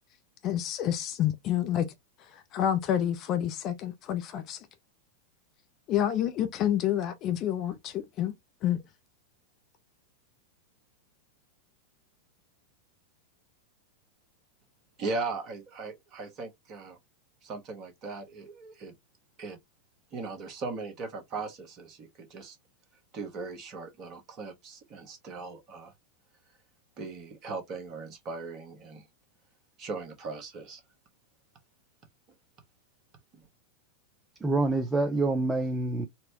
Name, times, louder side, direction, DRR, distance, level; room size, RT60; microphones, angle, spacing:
voice 1, 0.4-1.9 2.5-4.6 5.9-8.3 8.6-8.8, left 10 dB, 35° left, 0.6 m, -28 dB
voice 2, 15.0-17.0 17.4-18.9 19.4-19.6 20.1-22.6 23.1-25.9 27.0-29.0 29.8-30.8, right 3 dB, 35° right, 1.2 m, -38 dB
voice 3, 34.4-36.1, right 2 dB, 10° right, 0.5 m, -26 dB
4.2 x 2.1 x 2.8 m
figure-of-eight pair, 90°, 0 cm